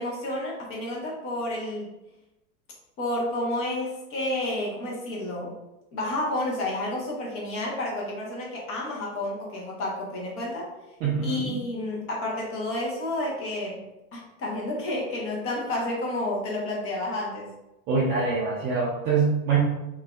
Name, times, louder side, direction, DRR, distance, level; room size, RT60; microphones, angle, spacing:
voice 1, 0.0-1.9 3.0-5.6 5.9-10.7 11.2-13.8 14.1-17.5, left 1 dB, 30° left, -3 dB, 1.0 m, -30 dB
voice 2, 11.0-11.5 17.9-19.6, right 5 dB, 25° right, -5 dB, 0.4 m, -24 dB
3.6 x 2.6 x 2.4 m, 0.96 s
supercardioid pair, 130°, 46 cm